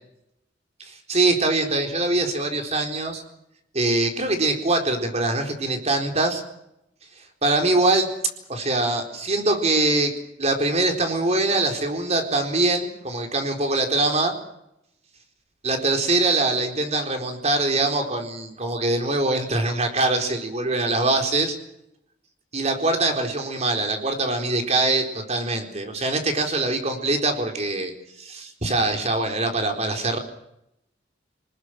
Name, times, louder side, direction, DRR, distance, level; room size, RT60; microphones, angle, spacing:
voice 1, 0.8-3.2 3.7-6.4 7.4-8.1 8.5-10.1 10.4-14.3 15.6-21.6 22.5-27.9 28.2-30.2, right 2 dB, 40° right, 4 dB, 4.1 m, -23 dB
29.0 x 19.5 x 6.4 m, 0.82 s
head